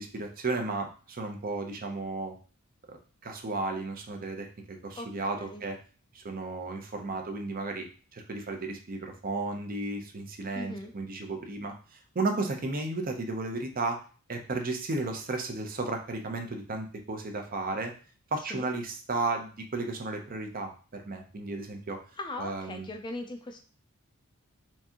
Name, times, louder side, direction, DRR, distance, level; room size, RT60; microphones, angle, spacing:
voice 1, 0.0-2.4 2.9-5.8 6.1-14.0 14.3-17.9 18.3-22.0 22.4-22.9, right 3 dB, 40° right, 4 dB, 0.6 m, -34 dB
voice 2, 10.5-10.9 18.5-18.7 22.2-23.6, left 2 dB, 20° left, 4 dB, 0.4 m, -39 dB
4.5 x 2.7 x 2.8 m, 0.38 s
head